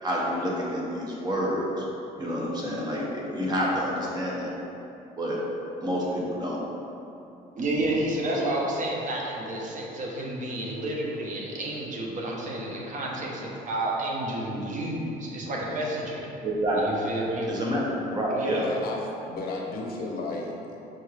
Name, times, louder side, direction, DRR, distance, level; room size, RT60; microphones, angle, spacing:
voice 1, 0.0-1.8 2.2-4.5 5.2-5.4 5.8-6.6 16.4-16.8 17.5-18.6, equal, 25° right, -4 dB, 0.9 m, -28 dB
voice 2, 7.6-16.2 16.8-17.5 18.3-18.6, right 1 dB, 50° right, -2 dB, 0.8 m, -30 dB
voice 3, 18.5-20.9, left 2 dB, 65° left, -1 dB, 0.7 m, -33 dB
5.9 x 3.1 x 2.4 m, 2.8 s
cardioid pair, 110°, 17 cm